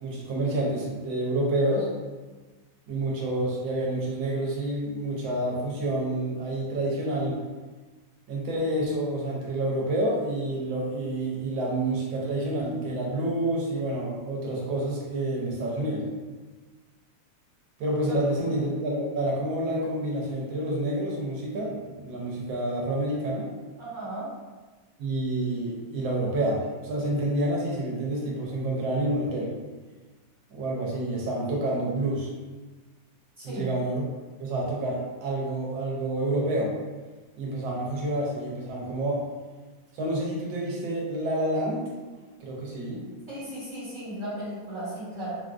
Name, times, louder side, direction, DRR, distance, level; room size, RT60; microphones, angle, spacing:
voice 1, 0.0-1.9 2.9-7.4 8.3-16.0 17.8-23.5 25.0-29.5 30.5-32.3 33.4-34.1 34.4-36.7 37.4-39.2 39.9-41.8 42.4-43.0, right 1 dB, 90° right, -3 dB, 1.5 m, -28 dB
voice 2, 23.8-24.3 33.4-33.7 43.3-45.3, right 1 dB, 50° right, -10 dB, 1.2 m, -36 dB
3.6 x 2.6 x 2.4 m, 1.3 s
omnidirectional pair, 2.0 m